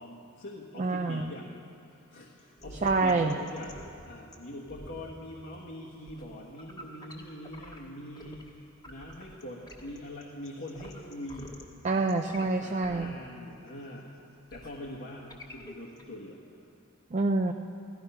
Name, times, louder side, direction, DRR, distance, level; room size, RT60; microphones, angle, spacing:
voice 1, 0.0-1.5 1.8-8.6 8.9-11.5 12.4-14.1 14.5-16.4, left 1 dB, 60° left, -4 dB, 1.4 m, -43 dB
voice 2, 0.8-1.3 2.8-3.4 11.8-13.1 17.1-17.5, right 3 dB, 35° right, 5 dB, 0.5 m, -27 dB
sound 1, 2.4-8.5 8.8-16.1, left 1 dB, 20° left, 1.6 m, -49 dB
16.0 x 13.0 x 5.6 m, 2.5 s
head